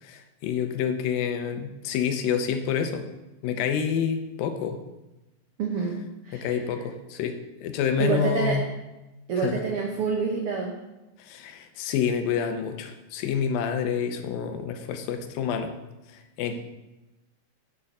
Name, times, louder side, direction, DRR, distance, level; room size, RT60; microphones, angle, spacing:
voice 1, 0.0-3.1 3.4-4.8 6.3-8.6 9.4-9.7 11.2-15.7 16.1-16.6, left 7 dB, 90° left, 7 dB, 2.6 m, -28 dB
voice 2, 5.6-6.0 6.2-6.5 8.0-8.6 9.3-10.8, right 5 dB, 90° right, 0 dB, 1.2 m, -27 dB
7.6 x 6.5 x 5.5 m, 1.0 s
omnidirectional pair, 4.0 m